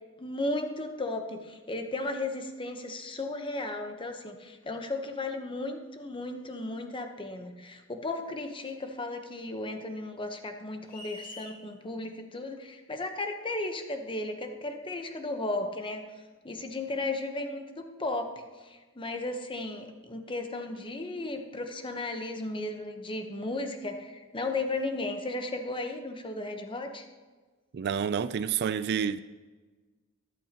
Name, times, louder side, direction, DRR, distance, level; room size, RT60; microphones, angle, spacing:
voice 1, 0.2-16.1 16.4-27.1, left 2 dB, 25° left, 1.0 m, -35 dB
sound 1, 10.9-11.6, left 1 dB, 40° left, 1.6 m, -45 dB
voice 2, 27.7-29.2, right 7 dB, 50° right, 0.3 m, -29 dB
13.5 x 12.0 x 2.9 m
head